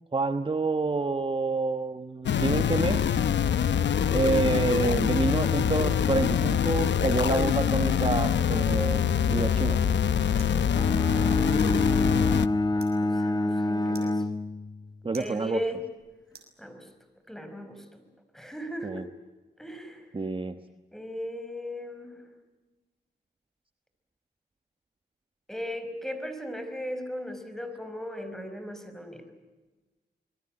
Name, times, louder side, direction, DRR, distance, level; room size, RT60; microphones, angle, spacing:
voice 1, 0.1-3.1 4.1-9.8 15.0-15.6 18.8-19.0 20.1-20.6, right 3 dB, 30° right, 9 dB, 1.2 m, -28 dB
sound 1, 2.3-12.5, left 8 dB, 80° left, 0.9 m, -24 dB
sound 2, 9.6-17.1, right 5 dB, 60° right, 6.4 m, -56 dB
Bowed string instrument, 10.7-15.0, left 2 dB, 20° left, 1.2 m, -27 dB
voice 2, 11.2-12.3 13.0-14.2 15.2-15.8 16.6-16.9 17.3-18.0 18.3-19.1 19.6-20.1 20.9-22.2 25.5-29.3, equal, ahead, 8 dB, 4.9 m, -37 dB
27.0 x 22.0 x 8.8 m, 1.2 s
cardioid pair, 85°, 18 cm